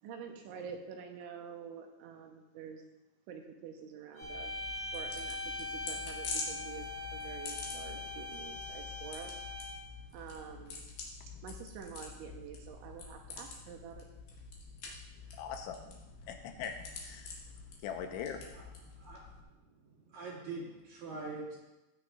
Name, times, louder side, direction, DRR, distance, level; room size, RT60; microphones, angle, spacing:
voice 1, 0.0-2.8 3.3-4.5 4.9-9.3 10.1-10.9 11.4-14.1, right 7 dB, 80° right, 3 dB, 3.1 m, -47 dB
sound 1, 4.2-19.4, left 4 dB, 60° left, 2.7 m, -46 dB
sound 2, 4.2-9.9, left 2 dB, 30° left, 3.3 m, -41 dB
voice 2, 15.4-15.8 16.3-17.4 17.8-18.4, left 7 dB, 80° left, 5 dB, 3.2 m, -41 dB
voice 3, 18.9-19.2 19.7-21.6, right 3 dB, 55° right, -4 dB, 3.3 m, -44 dB
16.0 x 9.3 x 2.4 m, 1.0 s
omnidirectional pair, 5.5 m